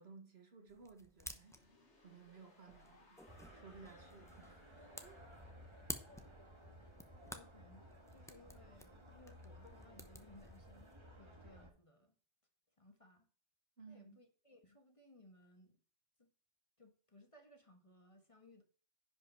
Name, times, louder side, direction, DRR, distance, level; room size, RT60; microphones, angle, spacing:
voice 1, 0.0-1.7 2.0-5.2 13.8-14.2, right 4 dB, 60° right, 1.8 m, -58 dB
sound 1, 0.7-11.0, equal, 5° left, 0.8 m, -54 dB
sound 2, 1.2-8.1, left 3 dB, 75° left, 2.0 m, -69 dB
sound 3, 3.3-11.7, equal, 25° right, 1.7 m, -58 dB
voice 2, 7.2-7.8 8.1-10.9 11.2-12.2 12.8-13.3 13.9-15.8 16.2-16.3 16.8-18.6, left 1 dB, 30° left, 1.5 m, -63 dB
10.5 x 5.3 x 4.4 m
omnidirectional pair, 1.2 m